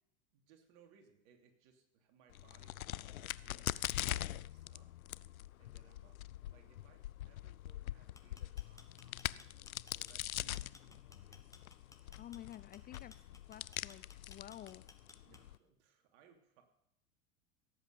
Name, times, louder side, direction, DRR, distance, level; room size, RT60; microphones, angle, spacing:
voice 1, 0.3-3.7 4.2-4.9 5.6-6.2 6.5-11.5 15.2-16.6, right 7 dB, 55° right, 4 dB, 2.8 m, -67 dB
Crack, 2.3-15.6, left 14 dB, 85° left, 0.5 m, -43 dB
sound 1, 8.0-15.7, left 3 dB, 10° left, 1.5 m, -60 dB
voice 2, 12.2-13.2 13.5-14.9, left 12 dB, 25° left, 14 dB, 0.4 m, -51 dB
17.0 x 8.2 x 6.9 m, 0.75 s
hypercardioid pair, 90°, 41 cm